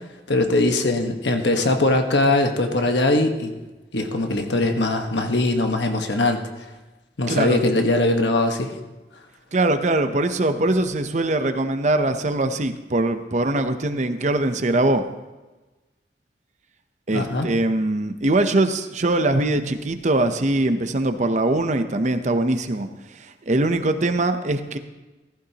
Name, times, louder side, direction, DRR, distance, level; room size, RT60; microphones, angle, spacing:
voice 1, 0.3-3.5 3.9-6.4 7.2-8.7 17.1-17.5, left 2 dB, 85° left, 4 dB, 1.3 m, -21 dB
voice 2, 7.3-7.6 9.5-15.0 17.1-22.9 23.2-24.8, right 2 dB, 40° right, 8 dB, 0.7 m, -22 dB
15.0 x 14.5 x 2.9 m, 1.2 s
head